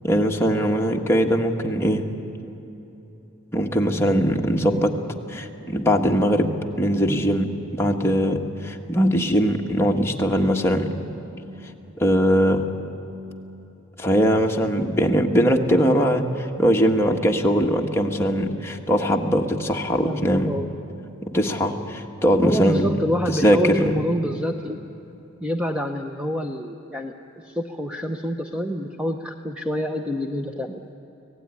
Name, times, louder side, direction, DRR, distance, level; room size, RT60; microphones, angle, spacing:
voice 1, 0.0-2.1 3.5-4.9 5.3-10.9 12.0-12.7 14.0-20.6 21.2-22.9 23.3-23.9, equal, 10° left, 1 dB, 1.5 m, -21 dB
voice 2, 20.0-20.7 22.4-24.8 25.4-27.1 27.4-30.9, equal, 5° right, 4 dB, 0.8 m, -27 dB
25.0 x 17.5 x 9.8 m, 3.0 s
head